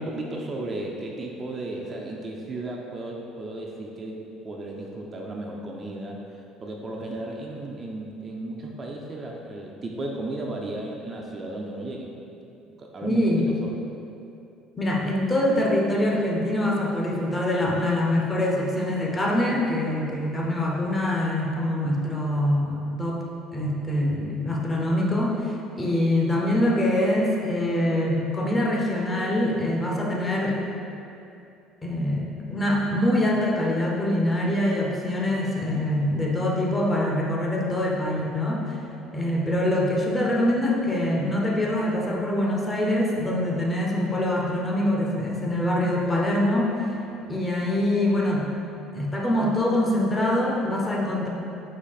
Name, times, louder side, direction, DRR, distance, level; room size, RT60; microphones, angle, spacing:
voice 1, 0.0-6.2 6.6-12.1 12.7-13.7, right 2 dB, 30° right, -1 dB, 0.4 m, -34 dB
voice 2, 13.0-13.5 14.8-23.2 23.5-30.6 31.8-38.8 39.1-46.7 47.3-48.5 48.9-51.3, left 1 dB, 20° left, -2 dB, 0.6 m, -24 dB
4.0 x 2.8 x 4.0 m, 2.7 s
cardioid pair, 115°, 0 cm